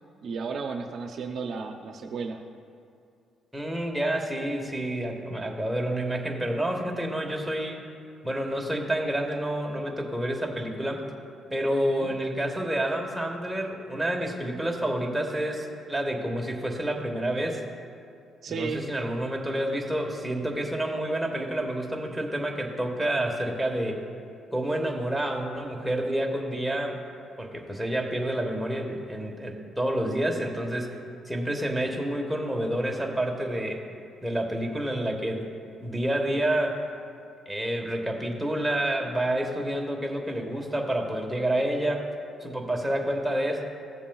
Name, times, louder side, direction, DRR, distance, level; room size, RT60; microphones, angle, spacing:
voice 1, 0.2-2.4 12.0-12.1 18.4-18.8, right 5 dB, 65° right, 4 dB, 0.6 m, -33 dB
voice 2, 3.5-7.8 8.2-11.1 11.5-17.6 18.5-24.0 24.5-27.1 27.4-31.0 31.2-33.8 34.2-35.5 35.8-36.9 37.5-42.1 42.4-43.6, right 1 dB, 5° right, 1 dB, 1.4 m, -29 dB
16.0 x 7.1 x 2.4 m, 2.5 s
cardioid pair, 90°, 0 cm